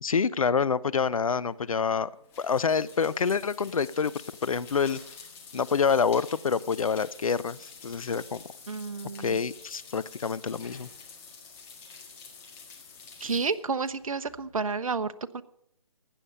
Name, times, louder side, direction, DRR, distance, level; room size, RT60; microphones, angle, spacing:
voice 1, 0.0-2.1 2.4-4.1 4.4-5.0 5.5-8.4 9.2-10.9, left 6 dB, 75° left, 19 dB, 0.6 m, -27 dB
sound 1, 1.5-14.7, left 5 dB, 15° left, 1.6 m, -49 dB
voice 2, 8.7-9.4 13.2-15.4, right 4 dB, 75° right, 11 dB, 0.9 m, -31 dB
16.0 x 10.0 x 5.5 m, 0.72 s
figure-of-eight pair, 155°, 18 cm